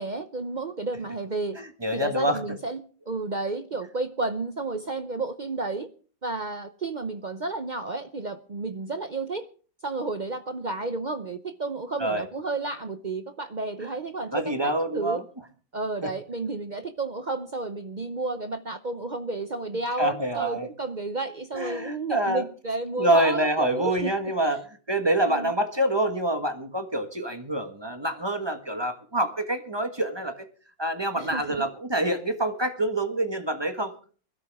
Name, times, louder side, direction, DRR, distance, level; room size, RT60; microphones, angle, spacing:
voice 1, 0.0-1.6 1.9-2.8 3.1-5.9 6.2-9.5 9.8-15.2 15.7-24.1 25.3-25.5 31.2-31.7, right 3 dB, 65° right, 10 dB, 0.4 m, -32 dB
voice 2, 1.6-2.4 12.0-12.2 14.3-15.2 16.0-16.1 20.0-20.7 21.5-22.4 23.0-24.6 24.9-30.3 30.8-33.9, right 1 dB, 15° right, 7 dB, 1.3 m, -26 dB
21.0 x 13.0 x 3.5 m, 0.40 s
omnidirectional pair, 2.0 m